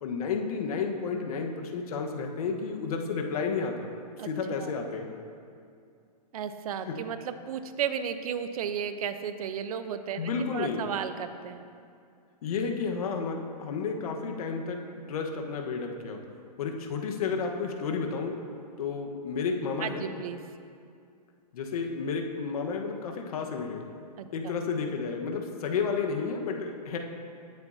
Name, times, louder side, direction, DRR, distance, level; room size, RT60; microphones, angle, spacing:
voice 1, 0.0-3.9 4.2-5.1 6.9-7.0 10.2-10.9 12.4-14.8 15.1-16.2 16.6-18.3 18.8-20.1 21.5-23.8 24.3-27.0, left 5 dB, 60° left, 3 dB, 1.3 m, -31 dB
voice 2, 6.3-11.6 19.8-20.4 24.2-24.6, right 8 dB, 60° right, 10 dB, 0.8 m, -34 dB
18.5 x 8.2 x 2.8 m, 2.4 s
hypercardioid pair, 140°, 21 cm